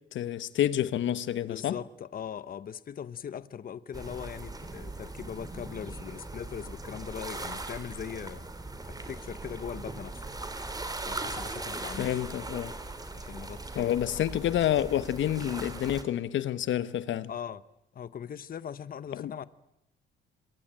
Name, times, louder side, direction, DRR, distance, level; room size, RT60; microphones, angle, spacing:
voice 1, 0.1-1.7 12.0-12.7 13.7-17.3 19.2-19.3, left 11 dB, 70° left, 1.1 m, -28 dB
voice 2, 1.5-8.4 8.9-10.2 11.0-12.1 13.1-13.9 17.3-17.6 17.9-19.4, left 8 dB, 45° left, 0.9 m, -40 dB
sound 1, 3.9-16.0, right 2 dB, 20° right, 3.5 m, -39 dB
25.0 x 22.5 x 8.8 m
cardioid pair, 90°, 20 cm